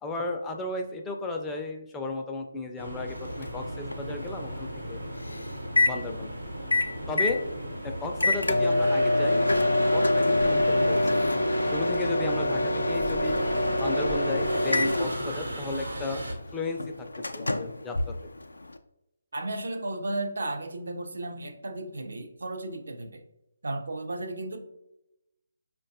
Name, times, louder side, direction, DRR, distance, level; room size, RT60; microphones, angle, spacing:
voice 1, 0.0-5.0 5.9-6.3 7.1-7.4 7.8-9.6 9.9-11.0 11.6-13.4 13.8-16.2 16.5-17.1 17.3-18.1, left 2 dB, 10° left, 2 dB, 0.4 m, -34 dB
sound 1, 2.8-16.3, right 1 dB, 85° right, 0.9 m, -37 dB
Microwave oven, 3.1-18.8, left 2 dB, 80° left, 0.3 m, -27 dB
voice 2, 19.3-23.2 23.6-24.6, right 2 dB, 65° right, 5 dB, 0.5 m, -34 dB
5.0 x 2.2 x 2.6 m, 0.88 s
figure-of-eight pair, 150°, 0 cm